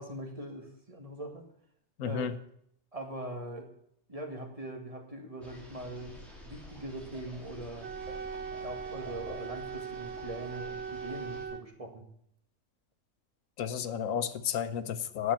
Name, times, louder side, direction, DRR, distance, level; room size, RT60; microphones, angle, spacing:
voice 1, 0.0-1.5 2.0-2.2 2.9-3.7 4.1-6.2 6.4-7.9 8.6-12.1, right 1 dB, 25° right, 2 dB, 2.0 m, -41 dB
voice 2, 2.0-2.3 13.6-15.3, left 8 dB, 90° left, 13 dB, 1.1 m, -32 dB
sound 1, 5.4-11.5, left 1 dB, ahead, 3.1 m, -49 dB
Wind instrument woodwind instrument, 7.8-11.7, right 7 dB, 65° right, 0.9 m, -40 dB
9.6 x 7.2 x 8.7 m, 0.70 s
omnidirectional pair, 1.3 m